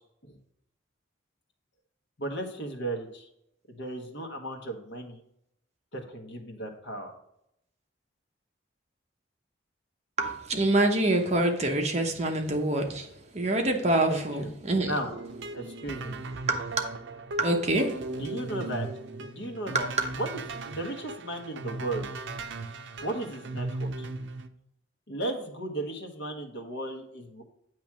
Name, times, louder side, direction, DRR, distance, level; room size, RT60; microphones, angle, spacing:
voice 1, 2.2-3.3 3.7-5.2 5.9-7.2 14.1-14.5 14.9-15.1 15.5-16.2 18.2-18.9 19.2-19.9 20.2-22.1 23.0-24.1 25.1-27.4, right 1 dB, 65° left, 2 dB, 1.2 m, -35 dB
voice 2, 10.2-14.9 16.5-16.8 17.4-18.0 19.7-19.9, right 2 dB, 35° right, 3 dB, 0.9 m, -26 dB
sound 1, 15.1-24.5, right 2 dB, 75° right, 0.5 m, -37 dB
8.5 x 3.1 x 5.9 m, 0.77 s
head